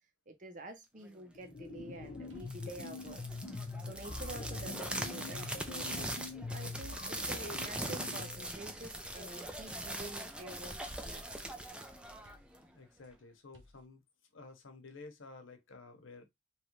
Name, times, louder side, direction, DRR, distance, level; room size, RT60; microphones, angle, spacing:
voice 1, 0.3-3.2 3.5-6.1 6.5-11.6, right 2 dB, 40° right, 0.7 m, -49 dB
sound 1, 1.3-8.5, left 3 dB, 50° left, 0.6 m, -44 dB
sound 2, 2.3-4.1 4.5-6.0 6.8-8.6 9.0-10.5 11.3-13.1 13.5-13.9, equal, 85° right, 0.7 m, -63 dB
sound 3, 2.4-12.7, right 1 dB, 5° right, 0.3 m, -41 dB
voice 2, 12.7-14.0 14.3-16.3, left 3 dB, 90° left, 0.8 m, -52 dB
3.1 x 2.4 x 3.0 m
head